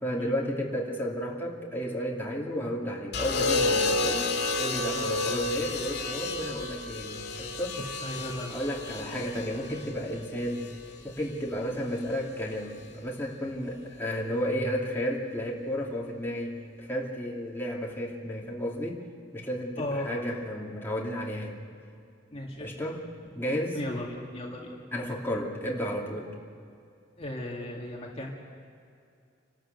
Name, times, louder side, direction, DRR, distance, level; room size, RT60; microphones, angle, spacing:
voice 1, 0.0-4.3 4.6-7.8 8.5-10.7 11.0-19.0 19.3-21.6 22.6-23.0 23.3-23.8 24.9-26.3, equal, 15° left, -3 dB, 2.5 m, -32 dB
sound 1, 3.1-11.3 12.5-12.9, left 3 dB, 60° left, 2.6 m, -31 dB
voice 2, 7.8-8.6 9.2-9.4 19.8-20.1 22.3-22.7 23.7-24.7 27.2-28.3, left 1 dB, 35° left, -2 dB, 2.1 m, -36 dB
29.0 x 13.0 x 8.0 m, 2.4 s
head